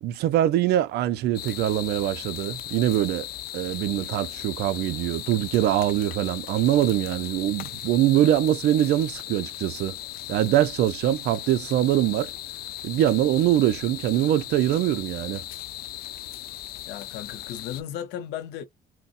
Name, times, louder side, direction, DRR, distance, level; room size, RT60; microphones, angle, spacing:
voice 1, 0.0-3.3 3.5-10.0 10.3-12.3 12.8-15.5, right 12 dB, 75° right, 0.5 m, -23 dB
sound 1, 1.3-17.8, left 14 dB, 65° left, 0.4 m, -37 dB
voice 2, 16.9-18.7, left 10 dB, 85° left, 0.7 m, -35 dB
3.9 x 2.1 x 2.5 m
cardioid pair, 110°, 17 cm